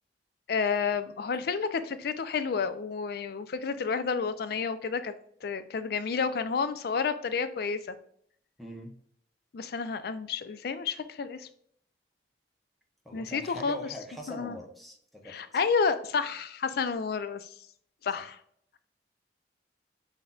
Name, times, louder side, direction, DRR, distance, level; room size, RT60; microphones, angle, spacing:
voice 1, 0.5-5.1 5.4-7.9 9.5-11.5 13.1-13.8 14.3-14.6 15.3-17.5 18.0-18.4, left 5 dB, 60° left, 11 dB, 0.4 m, -30 dB
voice 2, 8.6-8.9 13.0-15.4 18.1-18.2, equal, ahead, -1 dB, 0.8 m, -42 dB
5.9 x 2.7 x 2.3 m, 0.66 s
head